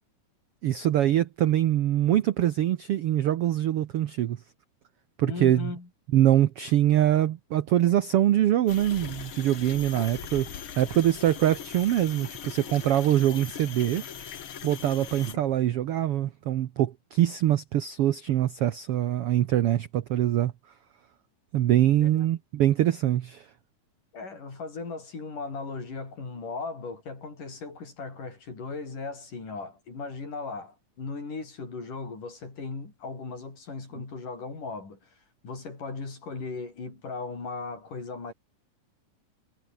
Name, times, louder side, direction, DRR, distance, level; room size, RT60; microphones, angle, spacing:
voice 1, 0.6-4.4 5.2-5.7 6.1-14.3 14.6-20.5 21.5-23.5, right 12 dB, 85° right, 1.3 m, -24 dB
voice 2, 5.3-5.9 9.9-10.1 15.3-15.7 22.0-22.3 24.1-35.1 35.4-38.3, left 4 dB, 70° left, 8.5 m, -37 dB
sound 1, 8.7-15.3, left 8 dB, 50° left, 1.9 m, -40 dB
omnidirectional pair, 3.9 m